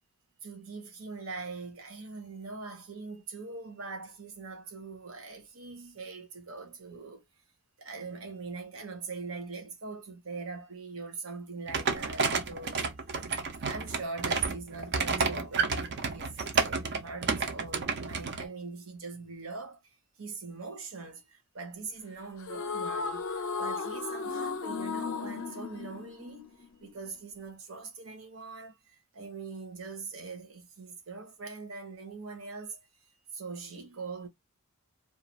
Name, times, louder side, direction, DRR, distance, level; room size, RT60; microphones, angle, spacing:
voice 1, 0.4-7.2 7.8-12.8 13.7-19.8 20.2-26.5 26.8-28.8 29.1-32.8 33.3-34.3, right 4 dB, 75° right, 0.9 m, -42 dB
sound 1, 11.7-18.4, right 4 dB, 55° right, 0.6 m, -31 dB
sound 2, 22.4-26.8, left 5 dB, 70° left, 0.5 m, -35 dB
2.4 x 2.3 x 3.0 m
head